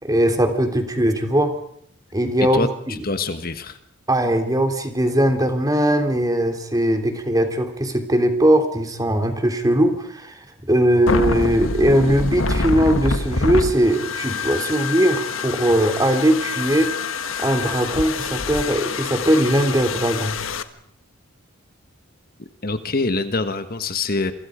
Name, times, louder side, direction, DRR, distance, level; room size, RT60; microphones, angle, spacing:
voice 1, 0.0-1.5 2.1-2.6 2.9-3.0 4.1-16.9 17.4-20.4, right 1 dB, 20° right, 6 dB, 3.2 m, -20 dB
voice 2, 2.5-3.8 22.4-24.3, left 3 dB, 45° left, 9 dB, 1.5 m, -25 dB
sound 1, 11.1-20.6, left 3 dB, 75° left, 1.5 m, -26 dB
28.0 x 25.0 x 5.1 m, 0.66 s
head